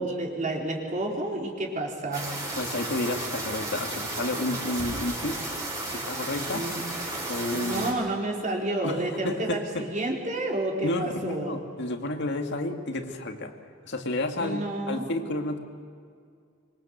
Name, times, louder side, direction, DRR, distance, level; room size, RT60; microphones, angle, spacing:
voice 1, 0.0-2.4 6.5-6.8 7.5-11.6 14.4-15.1, right 2 dB, 40° right, 0 dB, 4.1 m, -30 dB
sound 1, 2.1-7.9, right 2 dB, 15° right, 5.2 m, -33 dB
voice 2, 2.5-5.5 5.9-6.7 7.3-7.9 8.8-9.9 10.8-13.5 13.8-15.6, left 1 dB, 60° left, 5 dB, 2.2 m, -31 dB
Shatter, 4.6-8.1, right 1 dB, 80° right, 3.0 m, -46 dB
25.5 x 23.5 x 7.9 m, 2.2 s
head